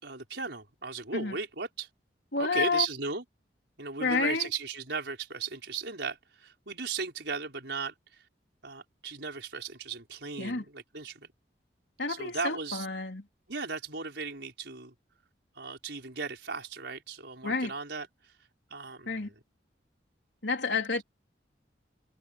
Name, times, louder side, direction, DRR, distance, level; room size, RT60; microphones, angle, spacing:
voice 1, 0.0-1.9 2.4-3.2 3.8-8.2 8.6-11.3 12.1-12.9 13.5-14.9 15.5-18.3 18.7-19.3, right 4 dB, 70° right, 4.8 m, -36 dB
voice 2, 2.3-2.9 4.0-4.5 10.4-10.6 12.0-13.2 17.4-17.7 19.1-19.3 20.4-21.0, left 4 dB, 75° left, 3.4 m, -29 dB
head